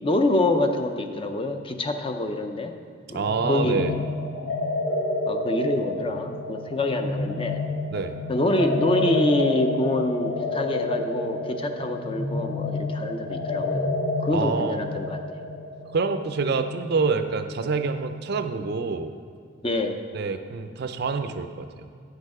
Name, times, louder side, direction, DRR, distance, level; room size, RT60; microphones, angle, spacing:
voice 1, 0.0-2.7 3.1-4.0 5.3-7.6 8.3-13.9 14.2-15.2 19.6-20.0, left 1 dB, 25° left, 6 dB, 0.5 m, -26 dB
voice 2, 3.1-3.9 7.9-8.2 14.3-14.8 15.9-19.1 20.1-21.9, right 4 dB, 55° right, 8 dB, 0.5 m, -27 dB
sound 1, 3.2-16.8, left 2 dB, 65° left, 2.5 m, -29 dB
9.8 x 6.6 x 4.8 m, 2.4 s
head